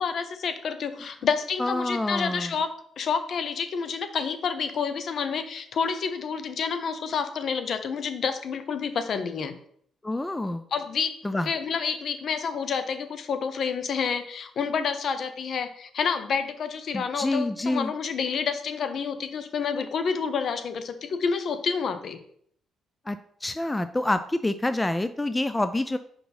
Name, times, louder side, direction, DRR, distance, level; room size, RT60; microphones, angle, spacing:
voice 1, 0.0-9.6 10.7-11.2 11.5-22.2, left 6 dB, 60° left, 9 dB, 0.7 m, -29 dB
voice 2, 1.6-2.5 10.0-10.6 11.2-11.5 16.9-17.9 23.1-26.0, left 2 dB, 15° left, 11 dB, 0.3 m, -27 dB
5.1 x 4.6 x 4.1 m, 0.64 s
cardioid pair, 90°, 0 cm